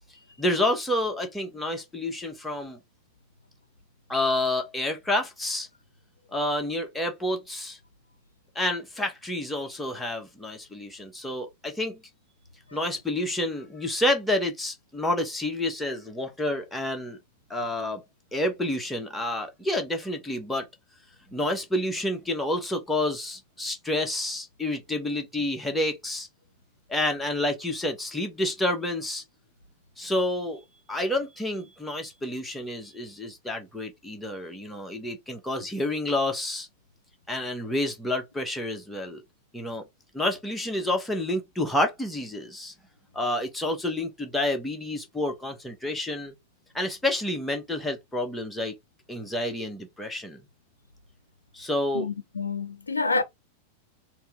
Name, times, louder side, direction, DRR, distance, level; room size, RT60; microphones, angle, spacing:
voice 1, 0.4-2.8 4.1-5.7 6.3-7.8 8.5-12.0 12.7-17.2 17.5-18.0 18.3-20.7 21.3-26.3 26.9-29.2 30.0-36.7 37.3-39.2 39.5-39.8 40.1-42.7 43.1-46.3 46.7-48.7 49.1-50.4 51.5-52.1, left 1 dB, 5° left, 1.3 m, -29 dB
voice 2, 51.9-53.2, left 4 dB, 80° left, 0.5 m, -28 dB
4.2 x 3.0 x 3.6 m
figure-of-eight pair, 90°, 0 cm